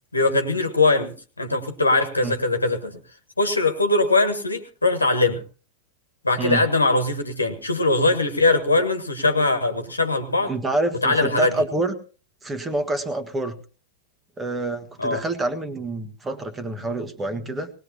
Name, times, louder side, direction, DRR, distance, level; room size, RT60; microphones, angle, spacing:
voice 1, 0.1-3.0 3.4-5.4 6.2-10.5 11.0-11.5 15.0-15.2, left 2 dB, 80° left, 7 dB, 1.5 m, -21 dB
voice 2, 10.5-11.9 12.4-13.6 14.4-17.7, right 2 dB, 15° right, 10 dB, 1.4 m, -27 dB
19.5 x 19.0 x 2.9 m, 0.35 s
figure-of-eight pair, 90°, 0 cm